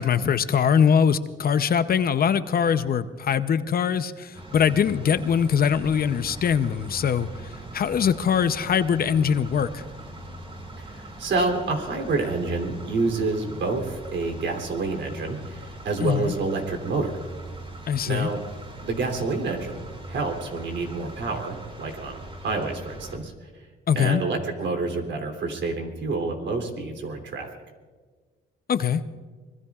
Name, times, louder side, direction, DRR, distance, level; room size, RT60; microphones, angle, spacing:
voice 1, 0.0-7.3 7.7-9.8 16.0-16.3 17.9-18.3 23.9-24.2 28.7-29.0, left 7 dB, 50° left, 12 dB, 0.7 m, -22 dB
sound 1, 4.3-23.2, right 1 dB, 30° right, 3.7 m, -41 dB
voice 2, 10.8-17.1 18.0-18.4 18.8-23.6 23.9-27.5, right 3 dB, 65° right, 3 dB, 3.1 m, -28 dB
25.0 x 21.0 x 2.4 m, 1.4 s
cardioid pair, 90°, 20 cm